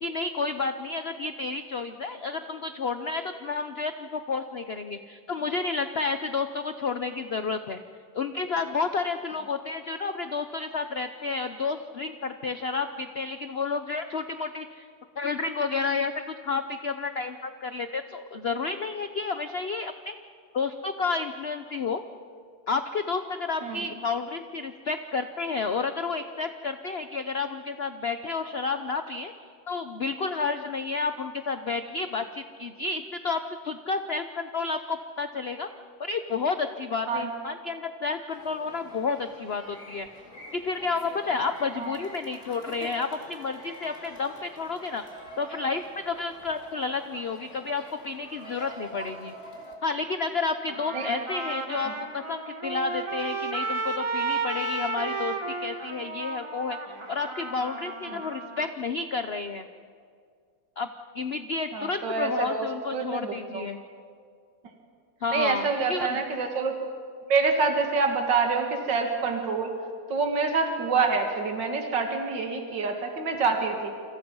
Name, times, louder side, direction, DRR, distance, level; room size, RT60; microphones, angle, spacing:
voice 1, 0.0-7.8 8.1-14.9 15.2-16.1 16.4-20.1 20.5-22.0 22.7-29.3 29.7-35.7 36.0-40.1 40.5-45.0 45.4-49.3 49.8-59.7 60.8-60.9 61.1-63.8 65.2-66.2, left 4 dB, 60° left, 9 dB, 0.6 m, -31 dB
sound 1, 38.3-49.8, equal, 35° left, 3.5 m, -45 dB
Trumpet, 50.7-58.7, right 3 dB, 15° right, 1.2 m, -33 dB
voice 2, 61.7-62.7 62.9-63.7 65.3-66.7 67.3-69.7 70.1-73.9, right 4 dB, 60° right, 3 dB, 2.8 m, -26 dB
28.5 x 27.0 x 5.5 m, 2.1 s
omnidirectional pair, 2.2 m